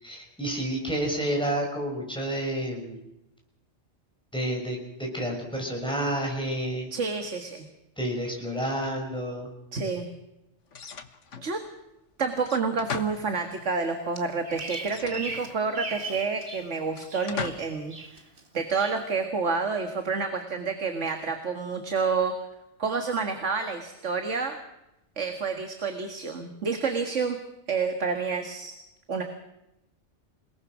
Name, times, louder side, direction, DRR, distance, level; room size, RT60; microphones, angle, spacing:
voice 1, 0.0-3.0 4.3-6.9 8.0-9.5, right 1 dB, 5° left, 0 dB, 6.1 m, -30 dB
voice 2, 6.9-7.7 9.7-10.1 11.4-11.6 12.2-18.1 18.5-22.3 22.8-24.6 25.2-27.4 27.7-28.7 29.1-29.2, right 4 dB, 75° right, 6 dB, 2.1 m, -29 dB
sound 1, 10.7-11.5 12.4-13.7 14.8-15.9 16.9-17.8, left 6 dB, 75° left, 1.7 m, -38 dB
Bird vocalization bird call bird song, 14.2-16.7 17.0-17.6 17.9-18.4 18.8-19.0, right 3 dB, 45° right, 2.3 m, -38 dB
28.0 x 18.5 x 6.3 m, 0.90 s
omnidirectional pair, 1.2 m